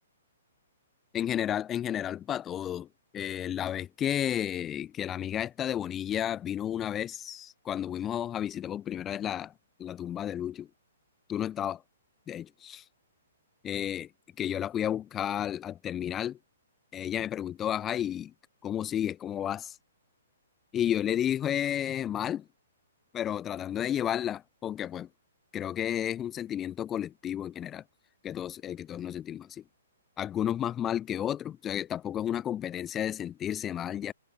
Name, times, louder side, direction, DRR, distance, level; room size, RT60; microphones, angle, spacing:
voice 1, 1.1-2.9 3.1-9.5 9.8-10.7 11.3-11.8 12.3-12.9 13.6-14.1 14.4-16.4 16.9-18.3 18.6-19.8 20.7-22.4 23.1-25.1 25.5-27.8 28.2-29.6 30.2-34.1, left 10 dB, 20° left, 0.4 m, -32 dB
figure-of-eight pair, 120°, 0 cm